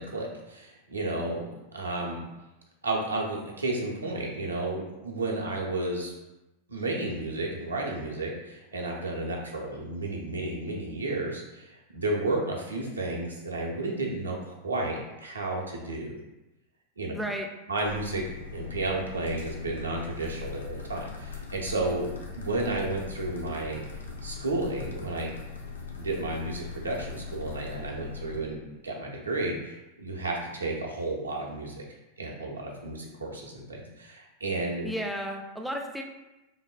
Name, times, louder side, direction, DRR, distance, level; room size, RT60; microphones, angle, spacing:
voice 1, 0.0-2.2 2.8-6.1 6.7-16.2 17.0-17.1 17.7-18.2 18.5-23.8 24.2-25.3 26.0-31.8 32.2-34.9, right 2 dB, 75° right, -1 dB, 0.5 m, -32 dB
voice 2, 17.1-17.5 34.8-36.0, equal, ahead, 2 dB, 0.3 m, -33 dB
sound 1, 17.8-28.4, left 5 dB, 70° left, 0.4 m, -40 dB
3.3 x 2.1 x 2.3 m, 1.0 s
figure-of-eight pair, 90°, 0 cm